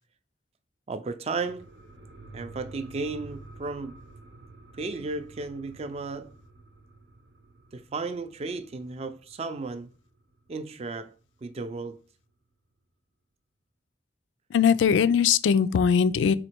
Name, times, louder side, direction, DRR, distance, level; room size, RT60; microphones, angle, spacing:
voice 1, 0.9-1.7 2.3-4.0 4.8-6.3 7.7-9.9 10.5-11.1 11.4-12.0, right 3 dB, 35° right, 0.4 m, -34 dB
sound 1, 1.3-10.4 10.7-10.8, right 2 dB, 85° right, 0.8 m, -49 dB
voice 2, 14.5-16.3, left 7 dB, 85° left, 0.3 m, -21 dB
4.3 x 2.8 x 4.4 m
head